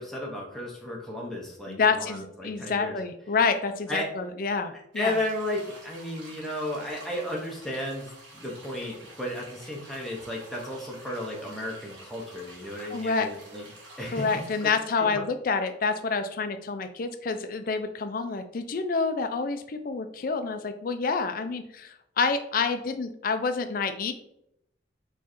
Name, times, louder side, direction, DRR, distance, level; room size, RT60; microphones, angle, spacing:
voice 1, 0.0-2.9 3.9-4.0 4.9-13.6 14.0-14.3 14.6-14.7 15.0-15.1, left 1 dB, ahead, -3 dB, 0.6 m, -34 dB
voice 2, 1.7-5.2 12.9-13.3 14.1-24.1, left 4 dB, 50° left, 9 dB, 0.4 m, -28 dB
sound 1, 4.9-14.9, right 1 dB, 90° right, 1.3 m, -49 dB
4.4 x 3.1 x 3.0 m, 0.77 s
head